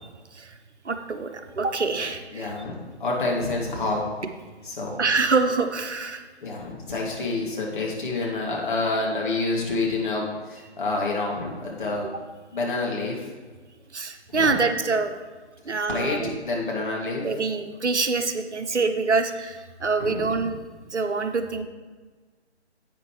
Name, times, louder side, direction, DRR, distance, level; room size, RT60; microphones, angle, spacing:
voice 1, 0.8-2.5 5.0-6.3 13.9-15.1 15.6-16.4 17.2-20.6 20.9-21.6, right 4 dB, 75° right, 7 dB, 1.0 m, -25 dB
voice 2, 1.9-4.0 4.6-5.0 6.4-12.1 12.5-13.3 14.3-14.6 15.9-16.2 16.4-17.2 20.0-20.4, left 3 dB, 45° left, -3 dB, 2.5 m, -28 dB
10.5 x 8.7 x 3.2 m, 1.4 s
figure-of-eight pair, 145°, 35 cm